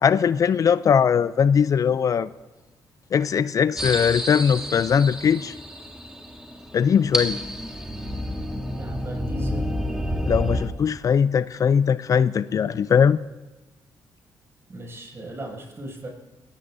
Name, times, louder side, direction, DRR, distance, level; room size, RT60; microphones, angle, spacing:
voice 1, 0.0-2.3 3.1-5.5 6.7-7.4 10.3-13.2, left 7 dB, 50° left, 16 dB, 0.4 m, -20 dB
sound 1, 3.8-10.7, equal, 5° right, 2.5 m, -29 dB
voice 2, 8.8-10.1 14.7-16.1, right 1 dB, 35° right, -1 dB, 6.3 m, -37 dB
20.0 x 16.5 x 2.7 m, 1.1 s
cardioid pair, 85°, 8 cm